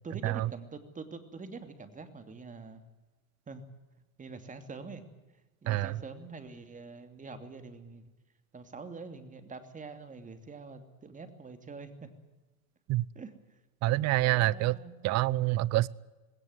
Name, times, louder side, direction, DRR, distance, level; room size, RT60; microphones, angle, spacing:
voice 1, 0.0-2.9 3.5-3.6 4.2-5.0 5.6-8.0 8.5-12.1 13.1-13.6 14.0-14.9, right 4 dB, 20° right, 2.8 m, -45 dB
voice 2, 5.7-6.0 12.9-13.0 13.8-14.7 15.0-15.9, right 17 dB, 40° right, 0.7 m, -27 dB
20.0 x 18.0 x 9.6 m
hypercardioid pair, 100°, 42 cm